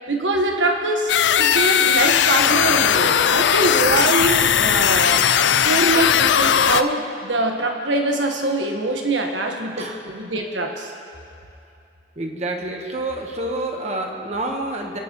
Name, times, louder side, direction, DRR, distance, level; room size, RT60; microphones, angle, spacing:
voice 1, 0.1-5.3 5.6-9.9 10.1-10.9, right 2 dB, 80° right, 2 dB, 1.4 m, -23 dB
sound 1, 1.1-6.8, left 8 dB, 70° left, 0.4 m, -18 dB
voice 2, 12.2-15.0, right 2 dB, 35° right, 2 dB, 1.2 m, -28 dB
27.5 x 9.5 x 3.1 m, 2.7 s
head